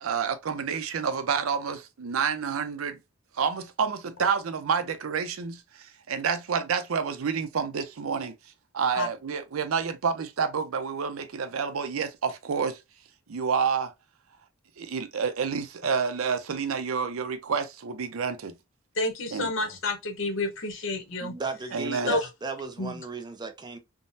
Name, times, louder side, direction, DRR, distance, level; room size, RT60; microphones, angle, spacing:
voice 1, 0.0-3.0 3.3-8.3 8.7-12.8 13.3-13.9 14.8-18.6 19.3-19.5 21.7-22.2, right 6 dB, 85° right, 0.5 m, -29 dB
voice 2, 19.0-21.3 22.1-22.3 22.8-23.0, left 2 dB, 65° left, 0.8 m, -29 dB
voice 3, 21.2-23.8, right 4 dB, 20° right, 0.4 m, -35 dB
3.6 x 2.0 x 2.6 m
head